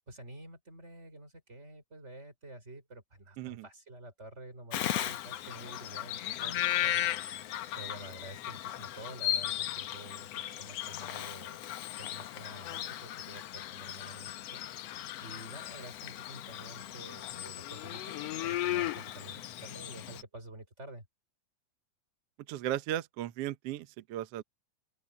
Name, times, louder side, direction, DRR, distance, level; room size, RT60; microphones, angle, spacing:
voice 1, 0.0-7.5 7.8-11.6 12.0-14.7 15.2-21.1, right 2 dB, 20° right, 5.3 m, -49 dB
Bird vocalization bird call bird song, 4.7-20.2, left 13 dB, 75° left, 1.4 m, -36 dB
voice 2, 22.5-24.4, right 12 dB, 80° right, 1.4 m, -36 dB
open air
omnidirectional pair, 4.0 m